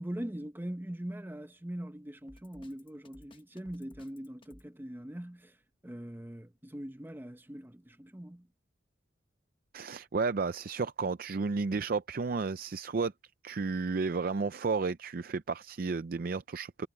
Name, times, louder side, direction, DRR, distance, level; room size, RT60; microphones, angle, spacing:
voice 1, 0.0-5.6 5.8-8.5, right 1 dB, 10° right, 0.7 m, -41 dB
Drum kit, 2.3-4.7, left 1 dB, 30° left, 1.2 m, -57 dB
voice 2, 9.7-13.1 13.4-16.9, right 4 dB, 50° right, 0.5 m, -32 dB
head